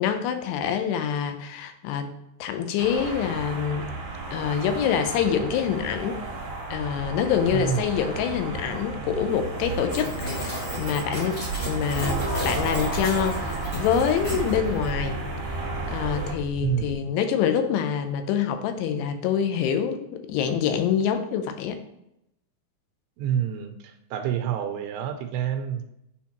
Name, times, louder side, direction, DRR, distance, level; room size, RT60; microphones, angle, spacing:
voice 1, 0.0-2.1 2.4-3.9 4.3-6.2 6.7-15.2 15.9-21.8, left 8 dB, 85° left, 7 dB, 2.8 m, -26 dB
sound 1, 2.8-16.3, right 3 dB, 60° right, 2.6 m, -33 dB
voice 2, 7.5-7.9 16.6-17.0 23.2-25.8, right 9 dB, 85° right, 6 dB, 2.6 m, -28 dB
sound 2, 9.9-14.9, equal, 25° left, 2.7 m, -35 dB
sound 3, 11.9-16.9, right 3 dB, 50° left, 3.1 m, -34 dB
9.2 x 4.3 x 3.0 m, 0.83 s
omnidirectional pair, 4.8 m